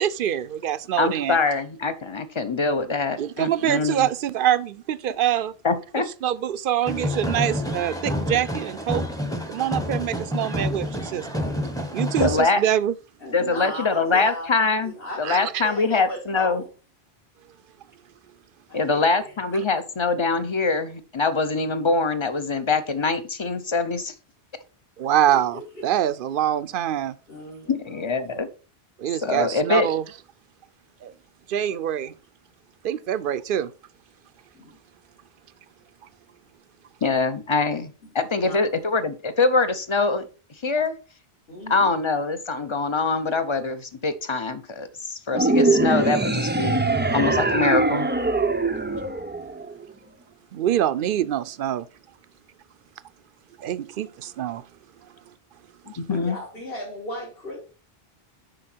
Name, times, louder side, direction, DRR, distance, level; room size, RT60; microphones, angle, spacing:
voice 1, 0.0-1.4 3.2-5.5 6.2-9.1 9.5-11.3 11.9-12.9 15.2-15.6 25.0-27.2 29.0-30.0 31.0-31.1 31.5-32.1 32.8-33.7 50.5-51.9 53.6-54.6, right 11 dB, 65° right, 0.7 m, -25 dB
voice 2, 1.0-4.1 5.6-6.1 12.2-12.6 13.3-16.6 18.7-24.1 27.7-28.5 29.2-29.9 37.0-40.3 40.6-40.9 41.7-48.1 55.9-56.4, left 4 dB, 30° left, 0.7 m, -24 dB
voice 3, 3.3-3.9 11.1-11.7 13.2-14.5 14.8-16.7 18.7-19.7 25.3-25.4 25.7-25.8 27.3-28.1 34.5-34.8 38.4-38.6 41.5-41.9 48.8-49.0 56.1-57.6, left 1 dB, 65° left, 2.6 m, -37 dB
sound 1, 6.9-12.4, equal, 5° left, 0.9 m, -28 dB
sound 2, 45.3-49.8, right 2 dB, 15° right, 0.4 m, -22 dB
7.8 x 5.6 x 4.4 m
omnidirectional pair, 1.0 m